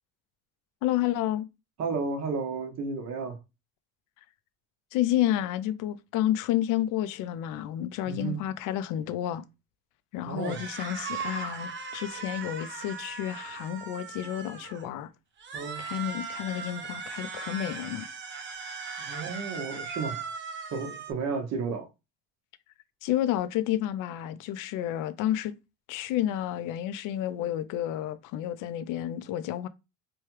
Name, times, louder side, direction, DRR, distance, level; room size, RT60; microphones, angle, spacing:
voice 1, 0.8-1.5 4.9-9.4 10.1-15.1 15.8-18.1 23.0-25.6 25.9-29.7, left 12 dB, 70° left, 0.5 m, -30 dB
voice 2, 1.8-3.4 8.1-8.4 10.3-10.6 15.5-15.8 19.0-20.2 20.7-21.9, right 4 dB, 50° right, 1.0 m, -32 dB
sound 1, 10.4-14.9 15.4-21.1, right 5 dB, 35° right, 0.6 m, -38 dB
3.2 x 2.3 x 3.0 m
cardioid pair, 105°, 33 cm